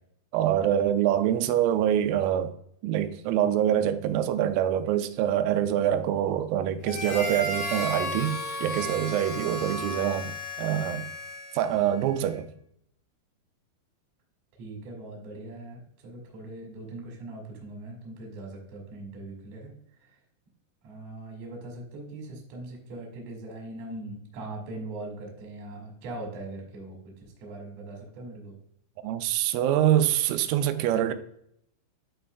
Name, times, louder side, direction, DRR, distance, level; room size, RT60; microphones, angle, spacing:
voice 1, 0.3-2.5 2.8-11.1 11.5-12.5 29.0-31.1, right 10 dB, 90° right, 3.3 m, -25 dB
Harmonica, 6.8-11.9, left 1 dB, 50° left, 4.0 m, -34 dB
voice 2, 14.6-19.7 20.0-20.2 20.8-28.6, right 2 dB, 50° right, 2.1 m, -41 dB
11.0 x 4.5 x 2.2 m
omnidirectional pair, 5.8 m